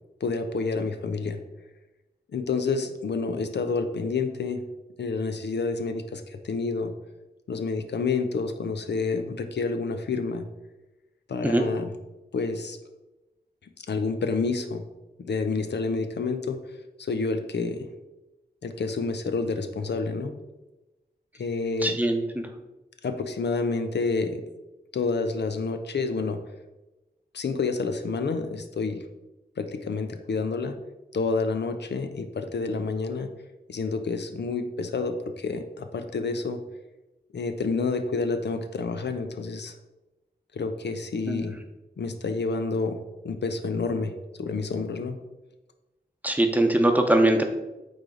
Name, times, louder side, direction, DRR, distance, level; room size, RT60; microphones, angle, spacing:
voice 1, 0.2-1.4 2.3-4.6 5.0-6.9 7.5-10.5 11.3-11.9 12.3-12.8 13.9-14.8 15.2-17.9 18.6-20.4 21.4-22.0 23.0-24.4 24.9-26.4 27.3-29.0 29.6-30.8 31.1-33.3 33.7-36.6 37.3-39.7 40.5-41.6 42.0-45.2, left 4 dB, 85° left, 8 dB, 0.6 m, -29 dB
voice 2, 21.8-22.5 41.3-41.5 46.2-47.4, right 1 dB, 10° right, 4 dB, 0.8 m, -22 dB
8.8 x 3.3 x 3.8 m, 1.0 s
wide cardioid pair, 85°, 17 cm